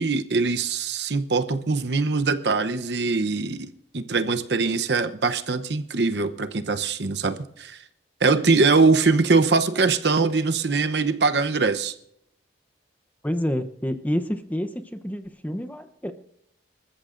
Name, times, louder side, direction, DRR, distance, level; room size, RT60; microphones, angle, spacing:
voice 1, 0.0-7.8 8.2-11.9, right 4 dB, 70° right, 9 dB, 0.8 m, -22 dB
voice 2, 13.2-16.1, equal, 10° left, 9 dB, 0.7 m, -28 dB
26.5 x 14.0 x 2.6 m, 0.75 s
head